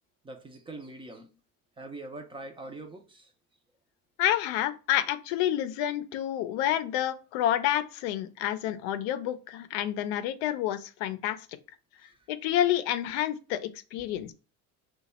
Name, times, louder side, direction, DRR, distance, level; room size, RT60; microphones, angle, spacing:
voice 1, 0.2-1.3 1.8-3.3 12.0-12.2, right 2 dB, 15° right, 0.4 m, -43 dB
voice 2, 4.2-11.4 12.3-14.3, left 12 dB, 90° left, 0.5 m, -29 dB
3.0 x 2.2 x 4.1 m
cardioid pair, 135°, 37 cm